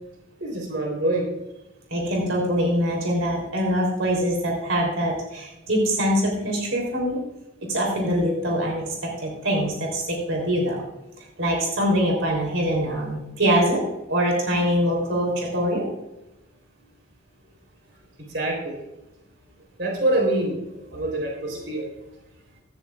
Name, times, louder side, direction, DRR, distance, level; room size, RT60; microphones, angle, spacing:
voice 1, 0.4-1.3 18.3-18.8 19.8-20.6 20.9-21.9, right 1 dB, 60° right, 0 dB, 3.7 m, -25 dB
voice 2, 1.9-7.2 7.7-10.8 11.4-13.8 14.1-15.8 20.9-21.0, equal, 90° right, 0 dB, 3.5 m, -23 dB
16.0 x 13.5 x 2.4 m, 0.95 s
head